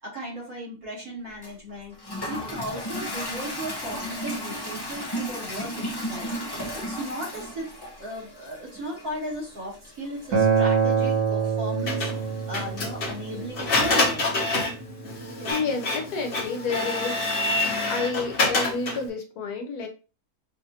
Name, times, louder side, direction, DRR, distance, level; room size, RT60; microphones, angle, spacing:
voice 1, 0.0-1.9 2.3-6.3 6.7-7.7 8.0-12.1 12.5-14.2, equal, 65° right, -5 dB, 2.9 m, -36 dB
Toilet flush, 1.4-14.2, equal, 25° left, 0.6 m, -36 dB
Acoustic guitar, 10.3-15.5, right 6 dB, 80° right, 1.7 m, -26 dB
Printer, 11.9-19.1, left 2 dB, 40° left, 1.1 m, -27 dB
voice 2, 15.5-17.3 17.8-19.9, left 4 dB, 80° left, 4 dB, 1.5 m, -30 dB
5.9 x 2.6 x 2.8 m, 0.33 s
omnidirectional pair, 1.6 m